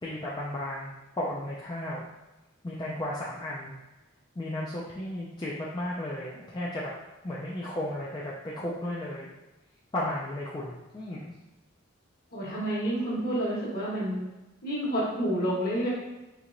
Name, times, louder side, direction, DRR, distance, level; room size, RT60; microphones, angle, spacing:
voice 1, 0.0-2.0 2.6-3.7 4.4-6.9 7.2-9.3 9.9-11.3, left 1 dB, 20° left, -6 dB, 0.4 m, -34 dB
voice 2, 12.3-14.2 14.6-15.9, right 1 dB, 45° left, -5 dB, 1.2 m, -29 dB
4.4 x 2.8 x 2.5 m, 1.0 s
head